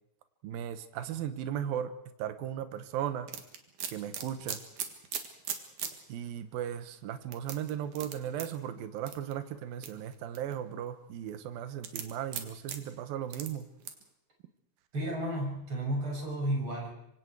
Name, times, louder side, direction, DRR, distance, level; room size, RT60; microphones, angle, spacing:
voice 1, 0.4-1.9 2.2-3.3 3.9-4.6 6.1-13.7, right 10 dB, 70° right, 10 dB, 2.2 m, -36 dB
sound 1, 3.3-6.0 6.4-6.5 7.3-8.5 9.1-9.3 9.8-10.6 11.8-12.8 13.3-13.5 13.8-14.0, right 8 dB, 55° right, 2.6 m, -37 dB
voice 2, 14.9-16.9, right 1 dB, 25° right, 0 dB, 6.9 m, -32 dB
26.0 x 25.0 x 4.8 m, 0.77 s
omnidirectional pair, 5.5 m